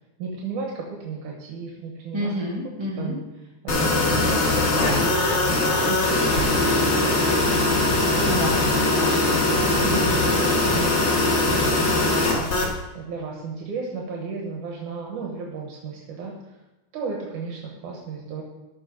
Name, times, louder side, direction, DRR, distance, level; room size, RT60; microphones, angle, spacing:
voice 1, 0.2-2.4 3.0-3.3 3.6-7.5 8.3-8.6 9.1-10.9 11.5-12.7 12.9-16.3 16.9-18.4, right 4 dB, 80° right, -1 dB, 2.7 m, -34 dB
voice 2, 2.1-3.1 8.2-9.4, left 1 dB, 10° right, -3 dB, 1.7 m, -30 dB
sound 1, 3.7-12.7, left 2 dB, 45° left, 2.3 m, -21 dB
13.0 x 5.6 x 5.3 m, 1.0 s
omnidirectional pair, 3.6 m